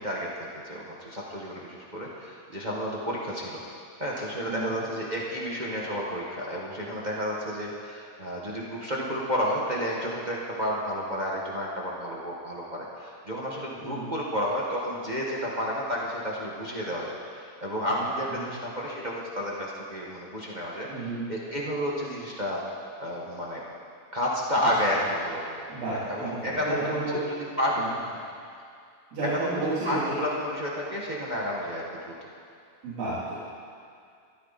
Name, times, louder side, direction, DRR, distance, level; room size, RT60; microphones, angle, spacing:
voice 1, 0.0-3.6 4.0-20.9 21.3-22.6 23.0-23.6 24.1-25.5 25.8-27.0 27.6-28.2 29.4-29.6 29.8-32.1, equal, 50° right, -4 dB, 0.5 m, -31 dB
voice 2, 13.8-14.1 17.9-18.0 18.4-18.5 20.9-21.3 25.7-27.2 27.8-27.9 29.1-30.2 32.8-33.3, right 2 dB, 90° right, -12 dB, 5.4 m, -32 dB
22.5 x 14.0 x 4.3 m, 2.3 s
omnidirectional pair, 3.9 m